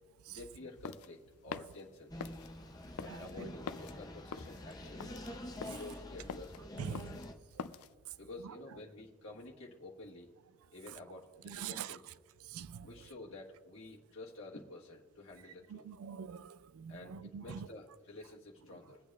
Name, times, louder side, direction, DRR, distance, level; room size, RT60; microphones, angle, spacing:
voice 1, 0.3-2.1 3.0-5.2 5.7-7.2 8.2-10.3 10.7-12.0 12.8-15.8 16.9-19.0, left 2 dB, 60° left, 1.5 m, -50 dB
sound 1, 0.6-7.9, left 6 dB, 85° left, 0.4 m, -46 dB
sound 2, 2.1-7.3, left 1 dB, 15° left, 0.6 m, -47 dB
voice 2, 3.1-3.5 6.8-7.1 11.4-12.0 12.4-12.9 15.7-17.7, right 7 dB, 75° right, 0.3 m, -44 dB
22.5 x 8.2 x 2.4 m
head